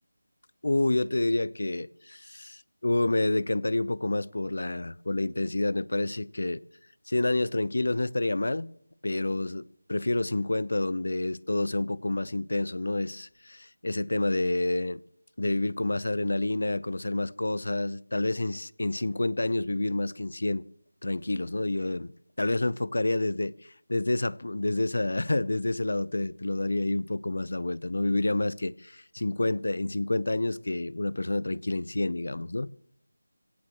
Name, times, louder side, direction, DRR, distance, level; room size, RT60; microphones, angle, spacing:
voice 1, 0.6-6.6 7.1-8.7 9.0-15.0 15.4-20.6 21.0-22.1 22.4-23.5 23.9-32.7, left 2 dB, 65° left, 0.7 m, -28 dB
26.5 x 17.0 x 3.1 m
figure-of-eight pair, 175°, 0 cm